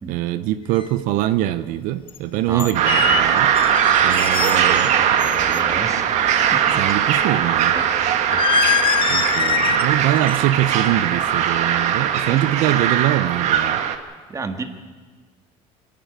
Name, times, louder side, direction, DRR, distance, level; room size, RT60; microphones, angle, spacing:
voice 1, 0.1-3.5 4.0-5.2 6.8-7.7 9.1-13.8, right 14 dB, 80° right, 13 dB, 0.7 m, -23 dB
sound 1, 0.8-0.9 2.1-2.2 2.6-4.9 5.2-5.6 8.3-9.9 10.2-10.5 10.8-11.1, left 8 dB, 40° left, 1.1 m, -23 dB
sound 2, 2.7-14.0, right 9 dB, 60° right, 1.6 m, -20 dB
voice 2, 4.5-6.1 6.5-6.8 7.7-7.8 8.3-8.4 12.2-12.4 14.3-14.7, right 4 dB, 25° right, 7 dB, 1.8 m, -31 dB
25.5 x 12.0 x 9.0 m, 1.5 s
cardioid pair, 135°, 14 cm